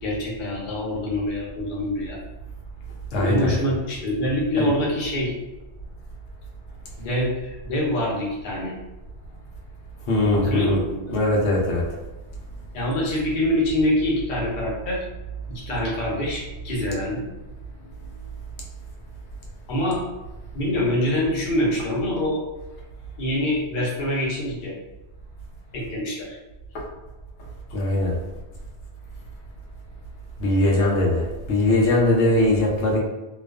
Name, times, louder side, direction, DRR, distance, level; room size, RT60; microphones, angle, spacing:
voice 1, 0.0-2.2 3.1-5.3 7.0-8.7 10.3-11.2 12.7-15.0 15.5-17.2 19.7-20.0 20.5-22.4 23.2-24.7 25.7-26.4, left 1 dB, 55° left, -4 dB, 0.8 m, -25 dB
voice 2, 3.1-3.5 4.6-4.7 10.1-10.8 11.1-11.8 27.7-28.1 30.4-33.0, left 1 dB, 85° left, -2 dB, 0.9 m, -20 dB
2.3 x 2.3 x 2.3 m, 1.1 s
omnidirectional pair, 1.2 m